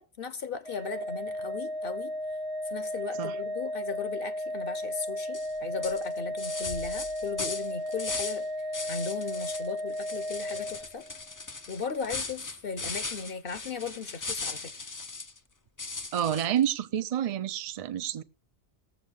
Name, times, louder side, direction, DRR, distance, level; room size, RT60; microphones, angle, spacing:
voice 1, 0.0-2.1 2.7-8.5 8.9-11.0 11.7-14.7, left 5 dB, 55° left, 0.9 m, -37 dB
Organ, 0.6-11.3, left 1 dB, 65° right, 1.6 m, -34 dB
sound 1, 5.3-5.5 5.8-8.4 8.7-9.7 9.9-15.4 15.8-16.7, left 3 dB, 30° left, 0.4 m, -38 dB
Bass drum, 6.7-8.1, left 7 dB, 85° left, 1.4 m, -46 dB
voice 2, 16.1-18.2, right 10 dB, 40° right, 0.6 m, -28 dB
18.5 x 7.4 x 3.7 m
omnidirectional pair, 1.2 m